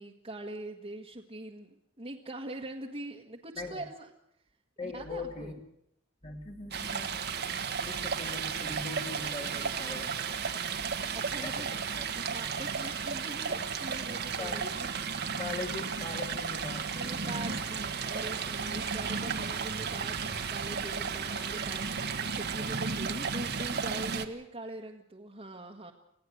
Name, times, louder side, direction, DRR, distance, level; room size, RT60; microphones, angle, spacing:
voice 1, 0.0-4.1 4.8-5.5 11.1-11.7 12.1-14.9 16.9-25.9, right 1 dB, 30° right, -2 dB, 1.6 m, -43 dB
voice 2, 4.8-5.6 6.2-7.2 7.8-10.4 11.4-11.6 11.9-12.0 13.5-13.6 14.4-14.8 15.4-17.6 21.2-21.5, left 3 dB, 30° left, 1 dB, 2.2 m, -41 dB
Stream, 6.7-24.3, right 6 dB, 50° right, 1.5 m, -34 dB
sound 1, 15.6-24.0, left 3 dB, 55° left, 5.9 m, -56 dB
26.0 x 16.5 x 7.9 m, 0.77 s
head